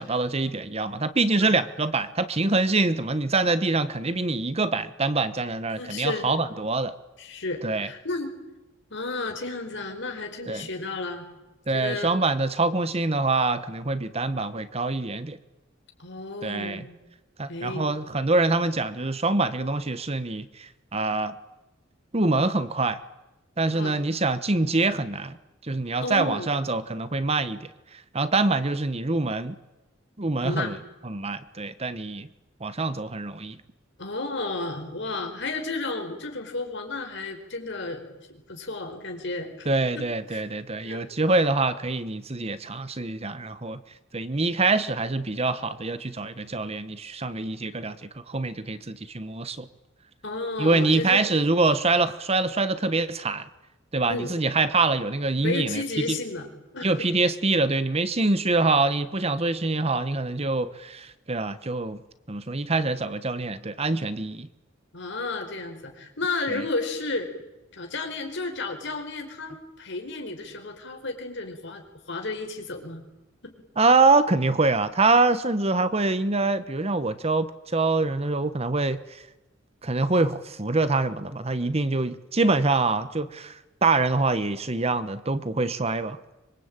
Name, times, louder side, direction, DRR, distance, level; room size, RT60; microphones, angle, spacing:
voice 1, 0.0-6.9 7.6-7.9 10.5-10.7 11.7-15.4 16.4-16.8 17.4-21.3 22.1-23.0 23.6-25.4 25.6-27.7 28.1-29.6 30.2-30.8 31.0-32.3 32.6-33.6 39.6-43.8 44.1-49.7 50.6-53.4 53.9-55.8 56.1-56.2 56.8-62.0 62.3-64.5 66.5-66.6 73.8-79.2 79.8-86.2, right 3 dB, 30° right, 13 dB, 1.1 m, -25 dB
voice 2, 5.8-6.3 7.2-8.3 8.9-11.3 11.7-12.2 16.0-16.8 17.5-17.9 23.7-24.0 26.0-26.5 30.4-30.7 34.0-39.7 40.3-40.4 40.8-41.1 50.2-51.3 54.1-54.3 55.4-56.5 56.7-57.1 64.9-67.3 67.7-73.0 73.4-73.5, left 3 dB, 65° left, 4 dB, 4.9 m, -32 dB
25.0 x 23.0 x 8.9 m, 1.0 s
head